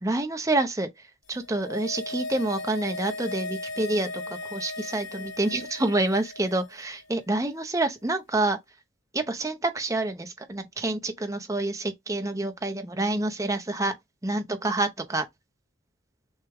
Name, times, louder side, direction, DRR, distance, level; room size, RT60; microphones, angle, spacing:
voice 1, 0.0-8.6 9.1-14.0 14.2-15.3, right 2 dB, 15° right, 0.7 m, -28 dB
sound 1, 1.3-6.8 7.1-7.2, left 2 dB, 60° left, 0.8 m, -37 dB
6.4 x 2.2 x 3.5 m
head